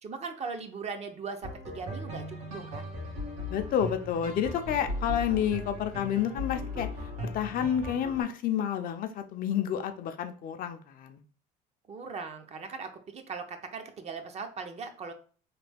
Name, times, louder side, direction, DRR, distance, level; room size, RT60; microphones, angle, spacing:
voice 1, 0.0-2.8 11.9-15.1, right 5 dB, 35° right, 0.6 m, -39 dB
sound 1, 1.4-8.2, left 1 dB, 90° right, 1.4 m, -37 dB
voice 2, 3.5-6.9 7.3-11.2, left 9 dB, 50° left, 0.5 m, -29 dB
3.2 x 2.2 x 3.3 m
supercardioid pair, 105°, 19 cm